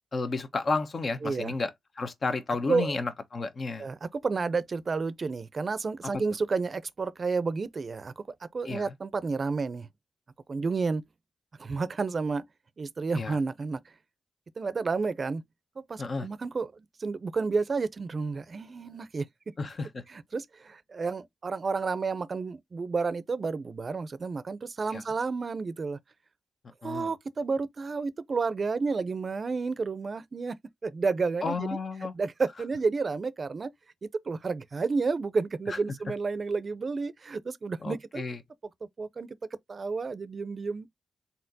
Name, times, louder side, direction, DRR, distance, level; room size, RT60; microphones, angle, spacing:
voice 1, 0.1-1.7 2.0-3.9 8.6-8.9 13.1-13.4 16.0-16.3 19.6-20.0 24.9-25.0 26.8-27.1 31.4-32.1 35.7-35.8 37.8-38.4, left 3 dB, 55° left, 1.0 m, -32 dB
voice 2, 1.2-1.5 2.7-3.0 3.8-9.9 10.5-11.0 11.6-12.4 12.8-13.9 14.6-15.4 15.8-19.3 20.1-26.0 26.8-30.6 30.8-31.8 32.1-33.7 34.0-38.2 38.8-39.4 39.7-40.9, right 4 dB, 50° right, 0.5 m, -31 dB
4.3 x 4.0 x 2.6 m
cardioid pair, 65°, 0 cm